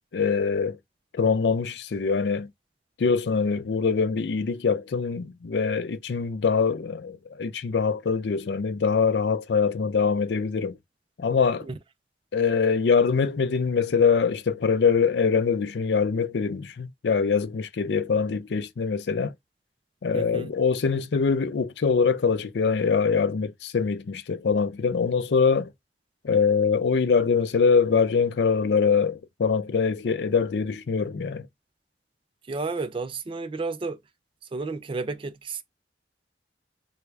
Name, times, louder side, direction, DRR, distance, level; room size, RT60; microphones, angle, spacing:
voice 1, 0.1-0.8 1.1-2.5 3.0-10.8 11.2-11.7 12.3-19.3 20.0-25.7 26.2-31.5, left 5 dB, 70° left, 0.4 m, -23 dB
voice 2, 20.1-20.5 32.5-34.0 34.5-35.6, right 3 dB, 30° right, 0.4 m, -31 dB
3.4 x 2.3 x 3.2 m
head